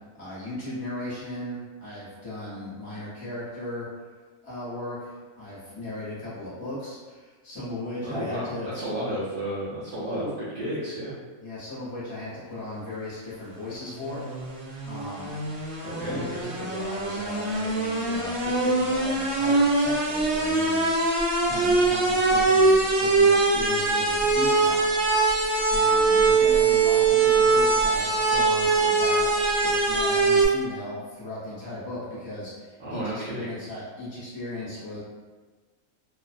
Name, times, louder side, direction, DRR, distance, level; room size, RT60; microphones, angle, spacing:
voice 1, 0.2-3.9 4.4-8.7 10.1-10.3 11.4-14.2 14.8-15.3 16.0-21.0 21.4-24.8 25.2-25.3 25.7-29.3 29.6-35.0, left 1 dB, 20° left, -10 dB, 0.8 m, -37 dB
voice 2, 8.0-11.1 15.8-16.5 32.8-33.5, right 1 dB, 60° right, -11 dB, 0.6 m, -32 dB
sound 1, 13.7-30.5, right 3 dB, 75° right, 1.0 m, -22 dB
2.5 x 2.1 x 2.5 m, 1.4 s
omnidirectional pair, 1.4 m